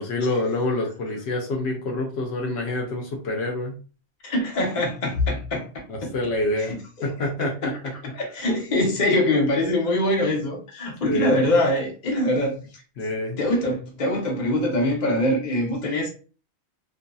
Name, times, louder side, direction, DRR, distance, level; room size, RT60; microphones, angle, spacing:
voice 1, 0.0-3.8 5.9-7.9 11.0-11.4 13.0-13.4, left 2 dB, 75° left, 0.9 m, -27 dB
voice 2, 4.2-5.7 6.0-6.1 6.7-7.1 7.4-7.8 8.0-12.6 13.4-16.1, left 1 dB, 45° left, 0.9 m, -23 dB
2.6 x 2.6 x 2.2 m
omnidirectional pair, 1.1 m